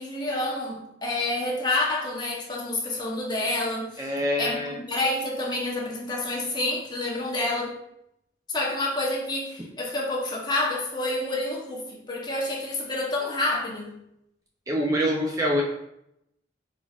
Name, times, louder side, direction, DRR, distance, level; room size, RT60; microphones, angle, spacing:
voice 1, 0.0-4.1 4.4-7.7 8.5-14.0, left 2 dB, 25° left, -3 dB, 0.8 m, -28 dB
voice 2, 4.0-4.8 14.7-15.6, equal, 20° right, -1 dB, 0.4 m, -25 dB
4.7 x 4.0 x 2.3 m, 0.80 s
head